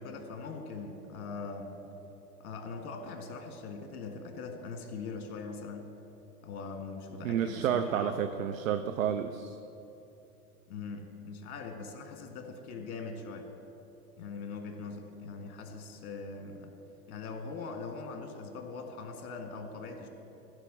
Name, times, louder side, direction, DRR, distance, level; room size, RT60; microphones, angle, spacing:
voice 1, 0.0-1.8 2.4-5.9 6.4-8.2 10.7-13.5 14.2-16.7 17.1-20.1, left 4 dB, 45° left, 6 dB, 1.7 m, -41 dB
voice 2, 7.2-9.6, right 9 dB, 60° right, 9 dB, 0.6 m, -30 dB
15.5 x 5.2 x 7.7 m, 2.8 s
figure-of-eight pair, 100°, 47 cm